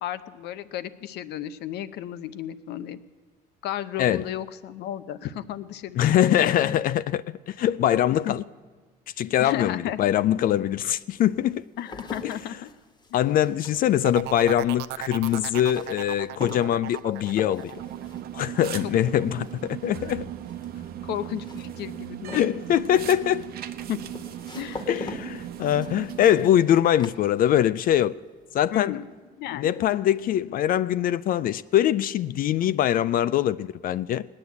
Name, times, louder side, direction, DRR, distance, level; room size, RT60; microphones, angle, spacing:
voice 1, 0.0-3.0 3.6-6.8 8.2-8.3 9.4-10.1 11.8-12.7 13.1-13.2 18.8-18.9 19.3-19.4 21.0-22.5 23.9-24.0 24.5-24.9 28.7-29.1 29.4-29.8, left 11 dB, 80° left, 0.8 m, -34 dB
voice 2, 6.0-8.4 9.2-11.6 12.2-12.3 13.1-17.7 18.3-20.3 22.3-23.5 24.9-28.2 28.5-29.0 29.5-34.2, left 11 dB, 55° left, 0.4 m, -23 dB
sound 1, 9.9-10.0 10.7-27.9 28.2-28.8, left 3 dB, 25° left, 1.4 m, -43 dB
sound 2, 14.0-19.7 20.1-20.5, right 13 dB, 85° right, 0.6 m, -37 dB
sound 3, 17.7-26.8, right 11 dB, 65° right, 0.9 m, -37 dB
18.0 x 9.7 x 8.2 m
cardioid pair, 110°, 17 cm